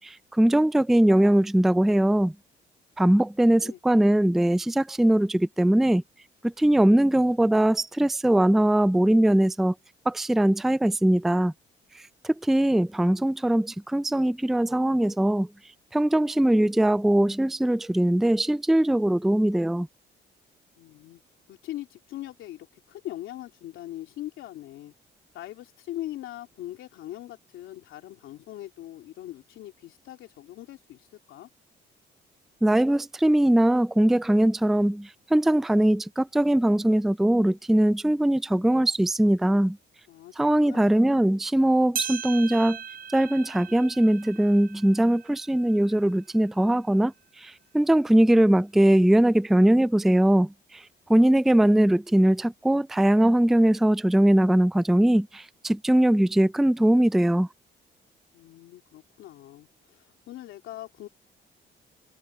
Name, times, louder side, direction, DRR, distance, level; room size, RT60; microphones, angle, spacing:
voice 1, 0.0-2.3 3.0-6.0 6.4-9.7 10.1-11.5 11.9-15.5 15.9-19.9 32.6-39.8 40.4-42.8 43.1-50.8 51.1-57.5, right 1 dB, ahead, 0.4 m, -21 dB
voice 2, 3.4-3.8 20.8-21.2 21.5-24.9 25.3-31.5 40.1-40.9 58.3-61.1, left 14 dB, 90° left, 2.9 m, -41 dB
sound 1, 41.9-46.6 47.1-47.2 48.0-48.1 49.0-49.1, right 8 dB, 45° right, 0.7 m, -39 dB
cardioid pair, 90°, 20 cm